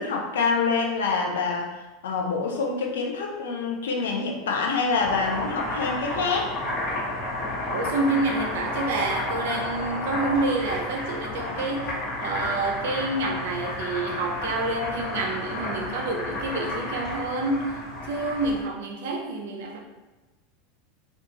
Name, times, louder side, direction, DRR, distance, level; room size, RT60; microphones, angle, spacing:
voice 1, 0.0-6.5, left 4 dB, 70° left, 0 dB, 0.4 m, -26 dB
Boiling, 4.8-18.6, left 1 dB, 55° left, 1.1 m, -31 dB
voice 2, 7.7-19.8, right 2 dB, 65° right, 1 dB, 0.5 m, -28 dB
2.5 x 2.3 x 2.8 m, 1.1 s
figure-of-eight pair, 80°, 0 cm